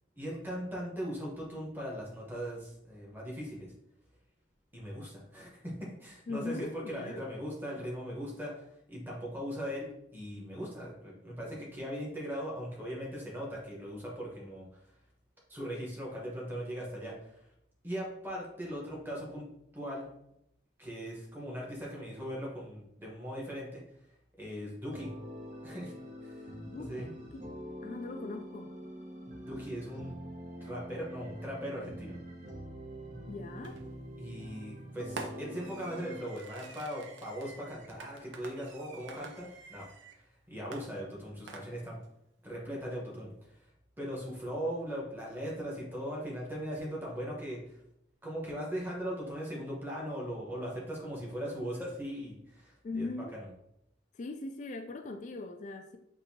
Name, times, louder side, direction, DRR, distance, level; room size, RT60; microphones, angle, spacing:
voice 1, 0.1-3.7 4.7-14.7 15.5-17.5 17.8-19.5 19.7-20.1 20.8-23.8 24.4-25.1 25.6-25.9 26.2-26.5 26.8-27.1 29.4-30.1 30.6-32.2 34.2-39.9 40.1-42.0 42.4-43.7 44.0-47.8 48.2-53.5, equal, 10° right, -4 dB, 1.1 m, -39 dB
voice 2, 6.3-7.2 26.7-27.4 27.8-28.8 33.3-33.8 52.8-53.3 54.1-56.0, left 3 dB, 40° left, 6 dB, 0.3 m, -40 dB
sound 1, 24.9-36.3, equal, 40° right, 0.7 m, -45 dB
Fireworks, 33.6-34.0 35.2-40.2 40.7-42.1, right 3 dB, 75° right, 0.6 m, -48 dB
6.5 x 2.7 x 2.8 m, 0.78 s
head